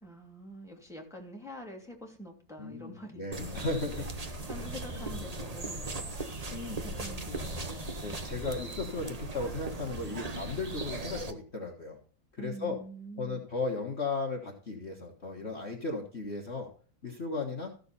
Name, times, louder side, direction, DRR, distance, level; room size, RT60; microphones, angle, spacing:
voice 1, 0.0-3.6 3.9-4.1 4.5-6.0 6.8-8.0 12.4-13.5, equal, ahead, 1 dB, 2.1 m, -46 dB
voice 2, 2.6-4.1 6.5-6.8 8.0-12.0 12.3-12.8 13.2-16.7 17.0-17.7, left 3 dB, 35° left, 0 dB, 1.5 m, -36 dB
sound 1, 3.3-11.3, right 2 dB, 30° right, 0.7 m, -38 dB
14.0 x 6.7 x 4.1 m, 0.43 s
omnidirectional pair, 2.2 m